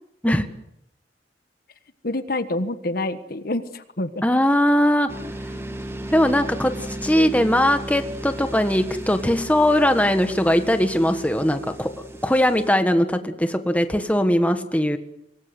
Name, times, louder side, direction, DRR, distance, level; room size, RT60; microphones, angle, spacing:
voice 1, 2.0-4.2, left 2 dB, 55° left, 10 dB, 1.4 m, -27 dB
voice 2, 4.2-5.1 6.1-6.7 7.0-11.9 12.2-15.0, equal, 10° left, 8 dB, 1.5 m, -20 dB
sound 1, 5.1-12.7, right 1 dB, 15° right, 2.2 m, -35 dB
26.0 x 20.5 x 7.9 m, 0.80 s
head